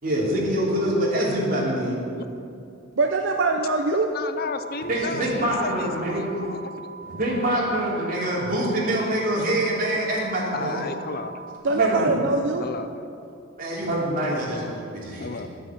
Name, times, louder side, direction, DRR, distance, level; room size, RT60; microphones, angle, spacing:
voice 1, 0.0-1.9 4.9-6.3 7.0-10.8 11.7-12.2 13.6-15.3, right 1 dB, 45° right, -5 dB, 3.0 m, -25 dB
voice 2, 3.0-4.1 11.6-12.6, right 3 dB, 60° right, 3 dB, 0.6 m, -22 dB
voice 3, 4.1-6.9 10.5-11.4 12.6-12.9 15.2-15.5, left 4 dB, 45° left, 9 dB, 0.5 m, -33 dB
sound 1, 4.4-11.6, right 4 dB, 30° left, 3.1 m, -41 dB
11.5 x 7.7 x 7.3 m, 2.6 s
head